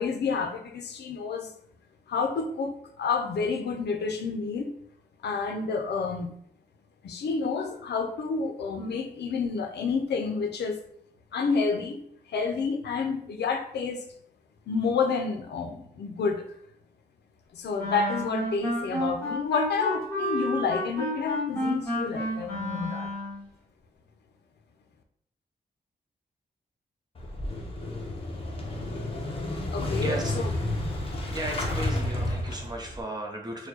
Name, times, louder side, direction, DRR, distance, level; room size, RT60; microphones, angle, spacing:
voice 1, 0.0-1.5 2.1-4.7 5.2-6.3 7.0-10.8 11.3-12.0 12.3-14.0 14.7-16.4 17.5-23.1 29.7-30.5, left 5 dB, 85° left, 5 dB, 0.5 m, -29 dB
Wind instrument woodwind instrument, 17.8-23.4, equal, 15° left, 1.3 m, -31 dB
Motorcycle / Engine starting, 27.1-33.0, left 1 dB, 35° left, 0.6 m, -31 dB
voice 2, 30.0-30.3 31.3-33.7, right 1 dB, 25° right, 1 dB, 0.7 m, -35 dB
4.4 x 2.2 x 2.8 m, 0.67 s
wide cardioid pair, 125°, 17 cm